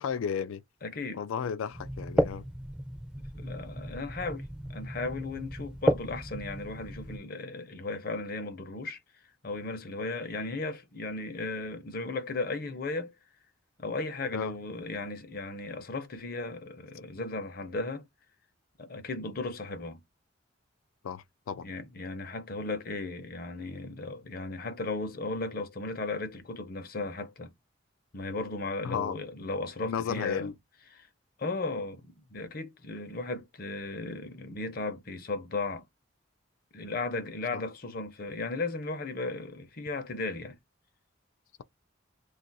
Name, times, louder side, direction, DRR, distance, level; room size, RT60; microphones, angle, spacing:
voice 1, 0.0-0.6 1.1-2.4 14.3-14.5 21.0-21.7 28.8-29.2 29.8-30.5 37.5-37.6, left 7 dB, 90° left, 0.3 m, -33 dB
voice 2, 0.8-1.2 3.3-9.0 9.4-13.1 13.8-18.0 18.8-20.0 21.6-27.5 28.1-30.5 31.0-31.1 31.4-35.8 36.7-40.6, left 3 dB, 45° left, 0.6 m, -36 dB
sound 1, 1.7-7.2, equal, 5° right, 0.4 m, -33 dB
2.4 x 2.3 x 3.9 m
head